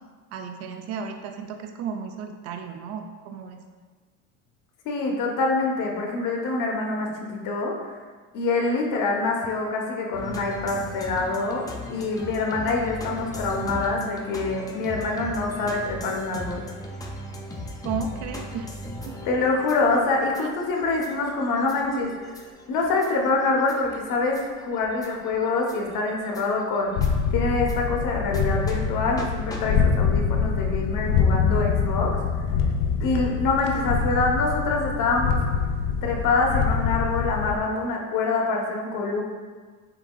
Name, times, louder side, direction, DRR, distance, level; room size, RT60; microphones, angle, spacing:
voice 1, 0.3-3.6 17.8-18.7 19.0-19.2 20.4-20.5, right 6 dB, 45° right, 5 dB, 0.4 m, -34 dB
voice 2, 4.8-7.9 8.3-16.7 19.3-22.4 22.7-26.9 27.3-32.2 33.0-35.4 36.0-39.2, left 3 dB, 60° left, 0 dB, 1.0 m, -25 dB
sound 1, 10.1-27.7 28.3-28.4 28.7-28.8 29.2-29.3 29.5-29.6, left 1 dB, 10° left, 0.5 m, -39 dB
sound 2, 27.0-37.6, left 6 dB, 80° left, 0.5 m, -25 dB
5.8 x 3.5 x 2.3 m, 1.5 s
supercardioid pair, 115°, 37 cm